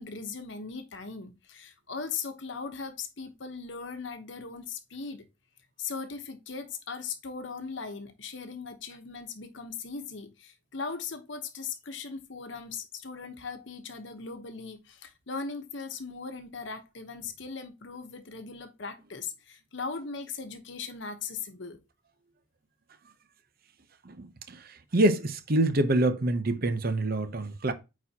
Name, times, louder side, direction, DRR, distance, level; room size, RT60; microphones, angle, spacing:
voice 1, 0.0-5.2 5.8-21.8, left 5 dB, 65° left, 1.0 m, -39 dB
voice 2, 24.1-24.6 24.9-27.7, right 1 dB, 50° right, 0.7 m, -26 dB
8.9 x 4.2 x 2.8 m
head